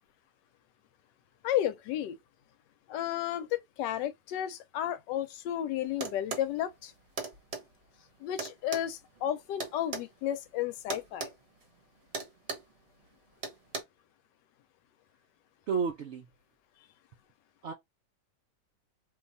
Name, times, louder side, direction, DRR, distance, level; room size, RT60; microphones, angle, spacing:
voice 1, 1.4-2.2 2.9-6.9 8.2-11.3, left 11 dB, 90° left, 1.2 m, -33 dB
sound 1, 6.0-6.5 7.2-7.6 8.4-10.1 10.9-11.3 11.6-11.8 12.1-12.7 13.4-13.8, right 4 dB, 45° right, 1.0 m, -37 dB
voice 2, 15.7-16.3 17.6-17.7, right 5 dB, 70° right, 0.6 m, -31 dB
2.9 x 2.3 x 3.9 m
omnidirectional pair, 1.8 m